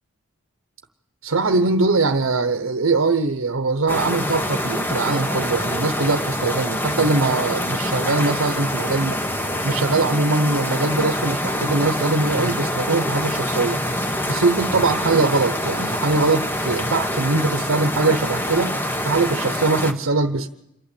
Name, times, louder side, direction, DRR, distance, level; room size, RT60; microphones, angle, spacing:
voice 1, 1.2-9.2 9.6-18.8 19.0-20.5, right 3 dB, 80° right, 8 dB, 0.9 m, -22 dB
sound 1, 3.9-19.9, equal, 10° left, 1.1 m, -25 dB
27.5 x 11.5 x 8.3 m, 0.82 s
head